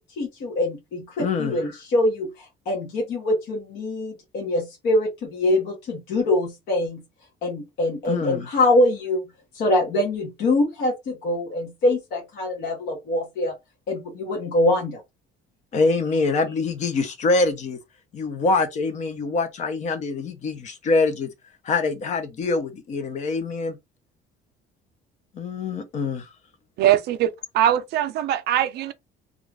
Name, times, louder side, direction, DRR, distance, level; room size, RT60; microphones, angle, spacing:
voice 1, 0.2-7.0 7.4-9.2 9.5-13.5 13.9-15.0, left 1 dB, 55° left, 0.9 m, -24 dB
voice 2, 1.2-1.6 8.1-8.5 15.7-17.8 18.1-21.3 21.6-23.8 25.3-26.3, left 3 dB, 35° left, 0.5 m, -24 dB
voice 3, 26.8-28.9, right 11 dB, 55° right, 0.4 m, -21 dB
2.5 x 2.3 x 3.2 m
cardioid pair, 175°, 20 cm